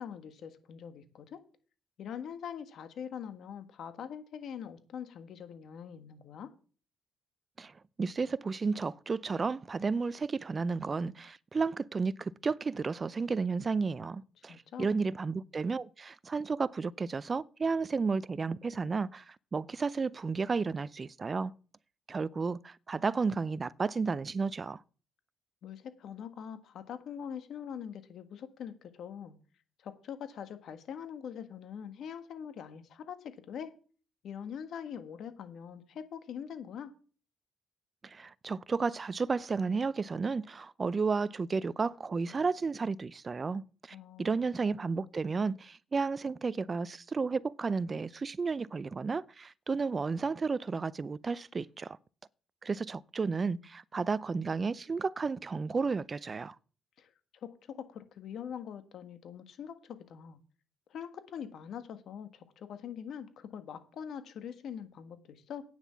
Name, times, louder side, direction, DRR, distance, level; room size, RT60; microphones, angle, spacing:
voice 1, 0.0-1.4 2.0-6.5 14.5-15.0 25.6-29.4 29.8-33.7 34.2-36.9 43.9-44.3 57.0-57.1 57.4-60.4 60.9-65.6, left 8 dB, 70° left, 1.6 m, -43 dB
voice 2, 7.6-21.5 22.1-24.8 38.0-52.0 52.6-56.6, right 4 dB, 35° right, 0.5 m, -32 dB
9.3 x 7.2 x 7.1 m
cardioid pair, 90°, 0 cm